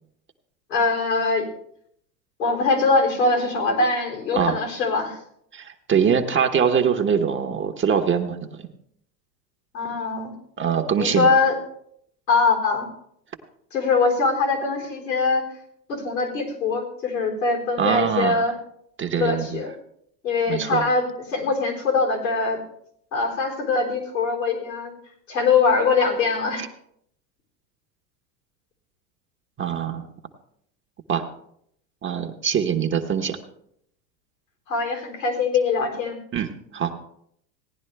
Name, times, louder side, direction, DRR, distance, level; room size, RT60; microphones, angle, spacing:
voice 1, 0.7-1.5 2.4-5.2 9.7-10.3 11.0-11.6 12.3-12.9 13.7-15.4 15.9-18.6 19.1-19.7 20.2-22.6 23.1-24.9 25.3-26.7 34.7-36.2, left 4 dB, 90° left, 0 dB, 4.1 m, -22 dB
voice 2, 5.5-8.7 10.6-11.3 17.8-18.5 19.0-19.6 20.5-20.8 26.6-26.7 29.6-30.1 31.1-31.3 32.0-33.4 36.3-36.5 36.7-37.0, right 7 dB, 25° right, 5 dB, 1.1 m, -23 dB
17.0 x 10.5 x 3.3 m, 0.71 s
hypercardioid pair, 100°, 49 cm